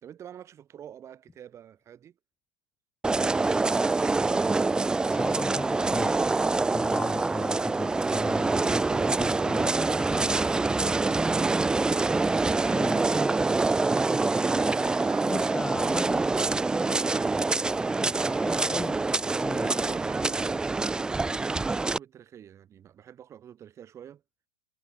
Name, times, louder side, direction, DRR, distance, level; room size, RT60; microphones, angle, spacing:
voice 1, 0.0-2.1 8.6-9.8 10.8-12.1 14.5-15.6 16.5-16.8 17.1-17.4 17.7-18.2 19.5-24.2, right 9 dB, 30° right, 3.2 m, -46 dB
sound 1, 3.0-22.0, right 3 dB, 10° right, 0.4 m, -25 dB
voice 2, 5.1-6.2 6.6-10.5 12.7-13.1 15.2-16.4 18.0-19.7, left 3 dB, 10° left, 0.9 m, -38 dB
sound 2, 9.5-10.9 11.9-13.2 14.2-15.6 17.0-17.3 18.3-18.6 19.6-20.0, left 9 dB, 25° left, 2.7 m, -53 dB
hypercardioid pair, 105°, 10 cm